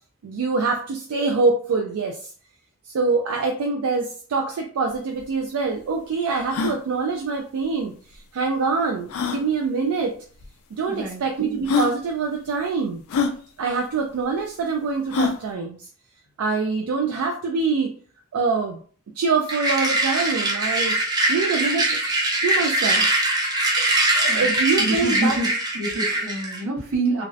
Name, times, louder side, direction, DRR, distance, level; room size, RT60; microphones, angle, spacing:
voice 1, 0.2-2.2 2.9-7.9 8.3-10.1 10.8-13.0 13.6-15.8 16.4-17.9 18.3-18.8 19.2-21.0 21.3-22.0 22.4-23.1 24.1-25.4, right 4 dB, 90° right, 2 dB, 0.4 m, -24 dB
sound 1, 4.9-5.0 5.2-5.3 5.8-5.9 6.4-6.8 8.1-8.2 9.1-9.4 10.4-10.5 11.2-11.3 11.6-12.0 13.1-13.3 15.1-15.4, left 5 dB, 75° left, 0.4 m, -24 dB
voice 2, 10.9-11.2 24.3-24.5 24.8-27.2, right 2 dB, 75° right, -2 dB, 0.9 m, -27 dB
sound 2, 19.5-26.6, right 1 dB, 20° right, 0.4 m, -22 dB
2.5 x 2.0 x 2.4 m, 0.43 s
head